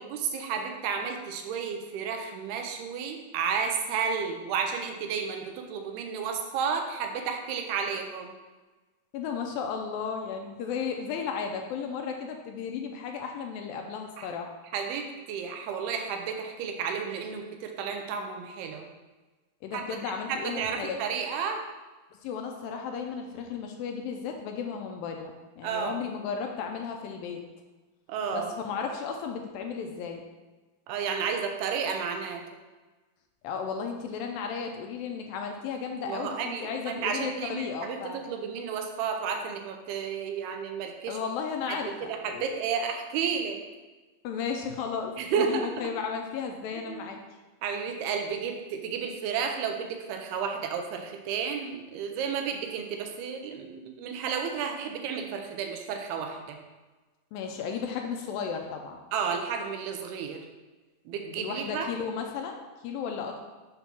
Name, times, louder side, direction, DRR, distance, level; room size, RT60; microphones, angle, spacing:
voice 1, 0.0-8.3 14.2-14.3 14.7-18.9 19.7-19.9 20.3-21.6 25.6-26.0 28.1-28.5 30.9-32.4 36.1-41.2 41.7-43.6 45.2-45.7 46.7-47.1 47.6-56.6 59.1-60.4 61.1-61.9, right 6 dB, 85° right, 4 dB, 2.8 m, -32 dB
voice 2, 9.1-14.5 19.6-21.0 22.2-27.4 28.3-30.2 33.4-38.2 41.1-42.6 44.2-47.2 57.3-59.0 61.4-63.4, left 6 dB, 80° left, 3 dB, 2.2 m, -34 dB
7.9 x 3.4 x 5.9 m, 1.2 s
omnidirectional pair, 4.4 m